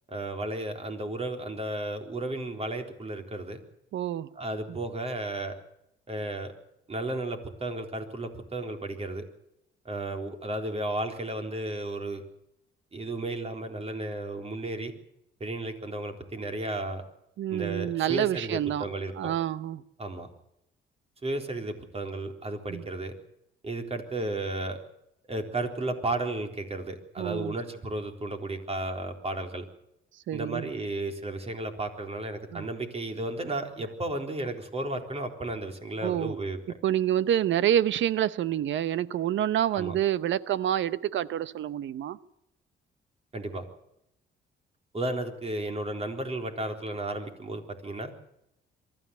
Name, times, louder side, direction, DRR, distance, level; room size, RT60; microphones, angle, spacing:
voice 1, 0.1-3.6 4.4-5.5 6.1-6.5 6.9-9.2 9.9-12.2 12.9-14.9 15.4-17.0 17.5-19.3 20.0-20.3 21.2-23.1 23.6-24.8 25.3-29.6 30.3-36.6 39.7-39.9 43.3-43.6 44.9-48.1, right 2 dB, 30° right, 5 dB, 3.9 m, -33 dB
voice 2, 3.9-4.3 4.7-4.8 17.4-18.8 19.2-19.8 22.7-22.9 27.2-27.6 30.3-30.7 32.5-32.7 36.0-36.3 36.8-42.2, right 11 dB, 70° right, 17 dB, 0.8 m, -27 dB
23.5 x 13.5 x 8.3 m, 0.82 s
cardioid pair, 90°, 20 cm